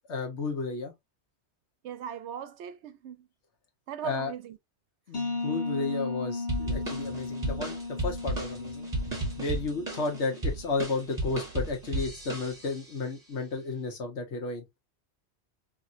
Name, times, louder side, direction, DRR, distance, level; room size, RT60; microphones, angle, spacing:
voice 1, 0.1-0.9 4.0-4.3 5.1-14.6, left 3 dB, 80° left, 1.3 m, -33 dB
voice 2, 1.8-3.3 3.9-4.6, right 9 dB, 80° right, 0.9 m, -39 dB
sound 1, 5.1-10.7, left 3 dB, 45° left, 1.2 m, -35 dB
sound 2, 6.5-12.9, right 1 dB, 20° right, 1.5 m, -34 dB
3.0 x 3.0 x 2.5 m
omnidirectional pair, 1.2 m